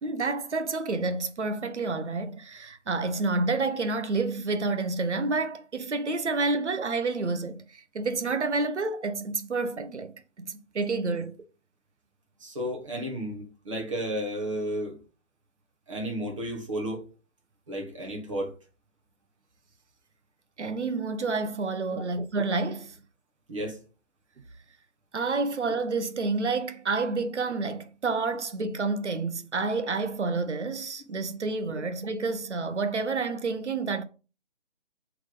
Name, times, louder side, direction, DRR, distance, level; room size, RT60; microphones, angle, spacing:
voice 1, 0.0-11.4 20.6-23.0 25.1-34.0, right 3 dB, 65° right, 1.1 m, -29 dB
voice 2, 12.4-15.0 15.9-17.0 17.7-18.5 21.9-22.0 23.5-23.8, equal, 25° right, 1.4 m, -33 dB
7.9 x 3.5 x 3.8 m
hypercardioid pair, 170°, 37 cm